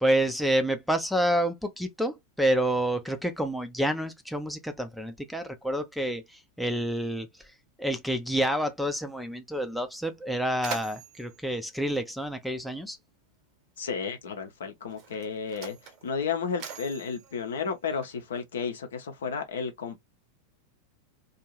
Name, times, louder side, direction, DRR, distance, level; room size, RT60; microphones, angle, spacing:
voice 1, 0.0-7.3 7.8-13.0, right 1 dB, ahead, 0.4 m, -28 dB
Mechanisms, 10.1-12.8 13.8-14.0 14.8-18.4, right 6 dB, 40° right, 0.8 m, -44 dB
voice 2, 13.8-15.8 16.0-20.0, left 6 dB, 65° left, 0.7 m, -32 dB
2.6 x 2.4 x 3.0 m
figure-of-eight pair, 90°, 0 cm